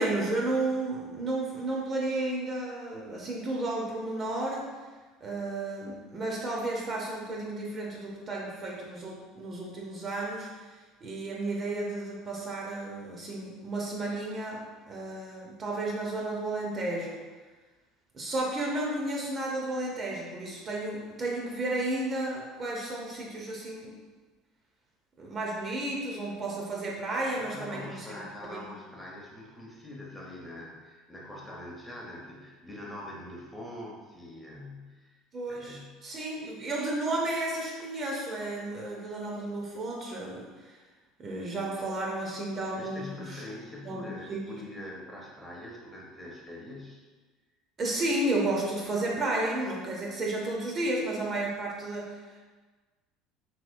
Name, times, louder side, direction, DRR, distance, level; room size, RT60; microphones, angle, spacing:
voice 1, 0.0-4.7 5.2-10.6 11.0-17.2 18.1-24.0 25.2-28.1 28.5-28.7 35.3-40.8 41.2-43.4 43.8-44.6 47.8-52.4, right 2 dB, 40° right, -2 dB, 0.6 m, -32 dB
voice 2, 27.3-35.2 35.5-36.0 42.7-47.0, left 1 dB, 5° left, -3 dB, 0.8 m, -43 dB
2.9 x 2.8 x 2.5 m, 1.3 s
hypercardioid pair, 70°, 0 cm